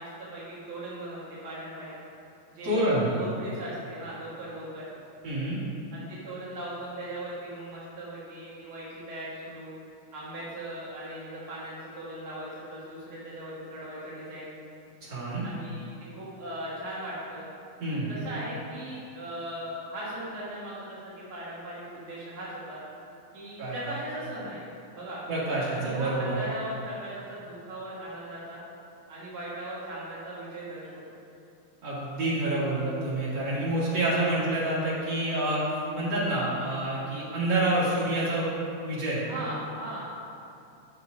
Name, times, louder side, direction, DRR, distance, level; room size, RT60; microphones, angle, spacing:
voice 1, 0.0-1.9 2.5-4.8 5.9-9.7 10.1-14.5 15.4-17.5 17.9-22.8 23.3-24.6 24.9-25.2 25.7-28.6 29.1-31.0 39.2-40.1, right 1 dB, 75° right, -8 dB, 1.2 m, -38 dB
voice 2, 2.6-3.1 5.2-5.6 15.0-15.4 17.8-18.1 23.6-23.8 25.3-26.3 31.8-38.6 38.8-39.2, right 1 dB, 35° right, -9 dB, 1.9 m, -28 dB
9.3 x 6.0 x 3.9 m, 2.7 s
omnidirectional pair, 4.7 m